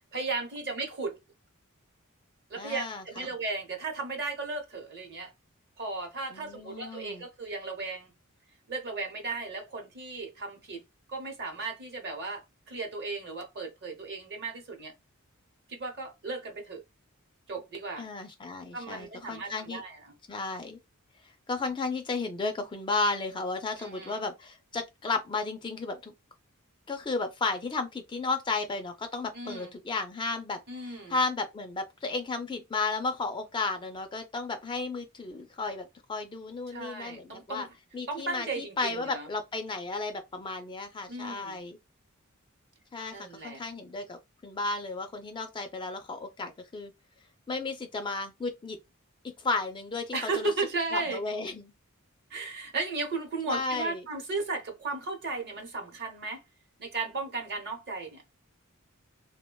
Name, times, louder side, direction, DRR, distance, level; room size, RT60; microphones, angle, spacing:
voice 1, 0.1-1.2 2.5-5.3 5.8-8.1 8.7-10.8 11.1-14.9 15.7-16.8 17.5-18.1 18.7-20.1 23.8-24.2 29.3-29.7 30.7-31.2 36.7-37.7 38.1-39.3 41.1-41.6 43.1-43.6 50.1-51.2 52.3-56.4 56.8-58.2, right 3 dB, 50° right, 0.8 m, -35 dB
voice 2, 2.6-3.3 6.3-7.2 18.0-19.8 20.3-20.8 21.5-26.1 26.9-37.7 37.9-41.8 42.9-46.9 47.5-48.8 49.2-50.5 50.9-51.7 53.5-54.0, left 3 dB, 20° left, 0.3 m, -33 dB
3.1 x 2.1 x 2.2 m
head